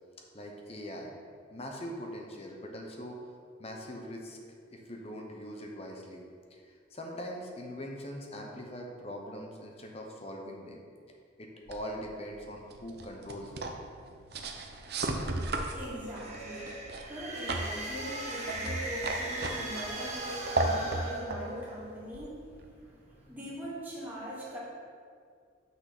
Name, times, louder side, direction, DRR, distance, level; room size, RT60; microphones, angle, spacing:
voice 1, 0.3-1.1 1.5-3.2 3.6-4.4 4.7-6.2 6.5-10.8 11.4-13.8, equal, 30° left, 1 dB, 1.0 m, -42 dB
sound 1, 11.7-22.8, right 2 dB, 55° right, 0.7 m, -36 dB
voice 2, 15.7-16.8 17.1-24.6, equal, 10° right, -8 dB, 2.3 m, -41 dB
sound 2, 15.9-21.9, right 1 dB, 35° right, 1.6 m, -39 dB
6.2 x 6.1 x 6.1 m, 2.2 s
head